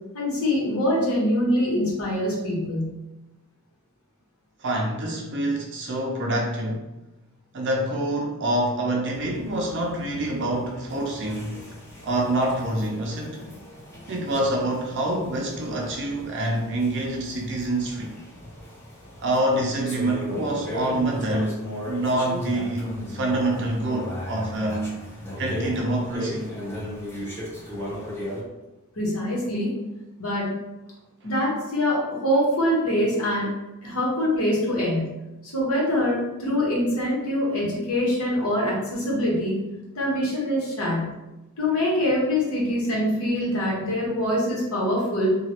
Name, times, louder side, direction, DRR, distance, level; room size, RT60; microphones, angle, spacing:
voice 1, 0.1-2.9 28.9-29.7 30.2-30.5 31.2-33.5 33.8-35.1 35.4-39.6 39.9-41.1 41.6-45.4, left 1 dB, 70° left, -5 dB, 1.1 m, -24 dB
voice 2, 4.6-6.9 7.5-11.6 12.0-13.4 14.1-18.1 19.2-25.0 25.4-26.5, right 1 dB, 55° right, -1 dB, 0.5 m, -26 dB
sound 1, 9.1-28.4, left 1 dB, 10° left, 0.7 m, -36 dB
2.9 x 2.3 x 2.9 m, 1.0 s
head